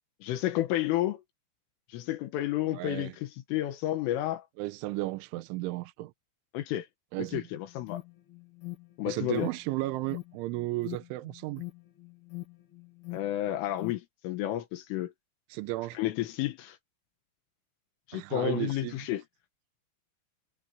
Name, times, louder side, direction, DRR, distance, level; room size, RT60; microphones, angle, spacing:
voice 1, 0.2-1.2 1.9-4.5 6.5-6.9 7.3-8.0 9.0-9.5 13.1-15.1 16.0-16.8 18.1-19.2, left 14 dB, 85° left, 4.0 m, -31 dB
voice 2, 2.7-3.2 4.6-6.1 7.1-7.5 9.1-11.6 15.5-16.0 18.1-19.0, right 19 dB, 85° right, 3.1 m, -34 dB
Alarm, 7.3-14.0, left 20 dB, 60° left, 3.1 m, -44 dB
omnidirectional pair, 5.6 m